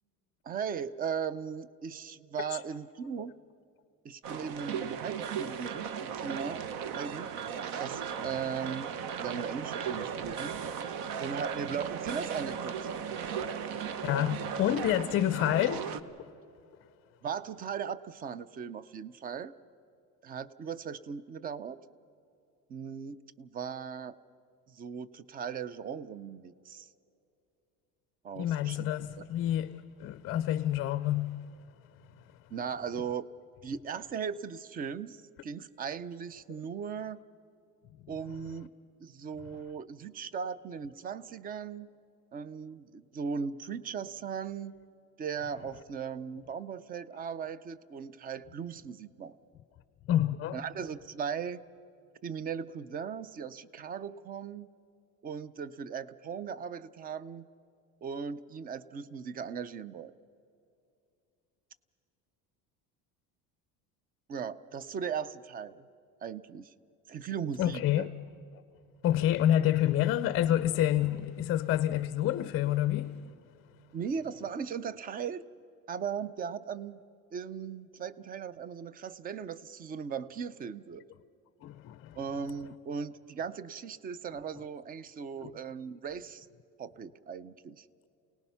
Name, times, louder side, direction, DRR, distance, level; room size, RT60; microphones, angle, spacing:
voice 1, 0.4-3.3 4.0-6.7 6.9-7.3 7.8-8.9 9.2-10.5 11.2-12.9 17.2-19.5 20.2-21.8 22.7-24.2 24.7-26.9 28.2-28.9 29.2-29.3 32.5-33.3 33.6-37.2 38.1-38.7 39.0-41.9 42.3-44.7 45.2-49.4 50.5-51.6 52.2-54.7 55.2-57.5 58.0-60.1 64.3-65.9 66.2-66.7 67.1-68.1 73.9-75.4 75.9-77.0 77.3-81.0 82.2-86.5 86.8-87.8, right 7 dB, 25° right, 0.4 m, -38 dB
sound 1, 4.2-16.0, right 7 dB, 60° right, 1.0 m, -36 dB
voice 2, 14.0-15.9 28.4-31.5 50.1-50.6 67.6-68.1 69.0-73.3 81.6-82.2 85.4-85.5, left 12 dB, 35° left, 0.5 m, -28 dB
29.0 x 18.5 x 5.6 m
cardioid pair, 160°, 39 cm